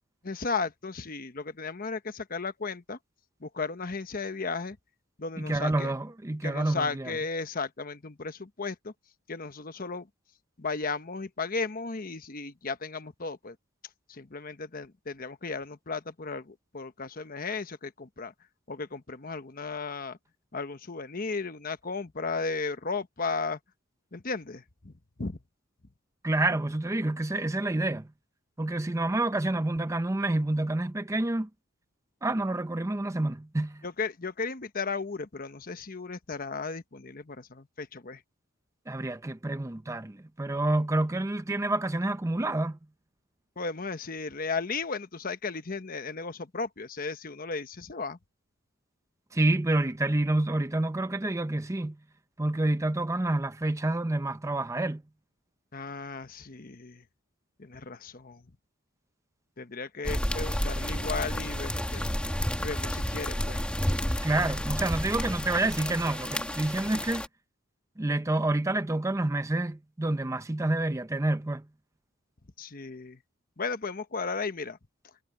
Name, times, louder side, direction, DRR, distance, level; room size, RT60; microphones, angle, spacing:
voice 1, 0.2-3.0 3.4-4.8 5.2-5.9 6.4-8.9 9.3-10.1 10.6-13.6 14.1-18.3 18.7-20.2 20.5-23.6 24.1-24.9 25.2-25.4 33.8-38.2 43.6-48.2 55.7-57.0 57.6-58.4 59.6-62.2 62.6-63.7 72.6-73.2 73.6-74.8, left 4 dB, 45° left, 1.1 m, -35 dB
voice 2, 5.4-7.1 26.2-28.1 28.6-31.5 32.2-33.8 38.9-42.8 49.3-52.0 52.4-55.0 64.2-67.2 68.0-71.7, right 2 dB, 15° right, 0.5 m, -28 dB
sound 1, 60.0-67.3, equal, 5° left, 1.9 m, -31 dB
head